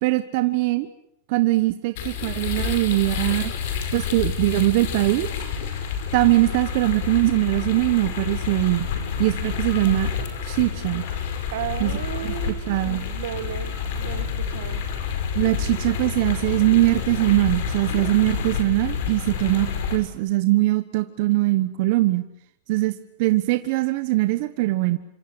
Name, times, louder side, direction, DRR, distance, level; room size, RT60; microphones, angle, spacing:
voice 1, 0.0-0.9 1.3-3.5 3.9-5.3 6.1-8.9 9.2-10.1 10.4-11.1 11.8-11.9 12.2-12.3 12.7-13.0 15.3-22.2 22.7-22.9 23.2-25.0, right 18 dB, 45° right, 10 dB, 1.2 m, -21 dB
sound 1, 2.0-20.0, left 6 dB, 55° left, 5.4 m, -29 dB
voice 2, 11.5-14.8, right 11 dB, 75° right, 11 dB, 2.2 m, -34 dB
27.0 x 25.5 x 7.9 m, 0.75 s
supercardioid pair, 170°, 0 cm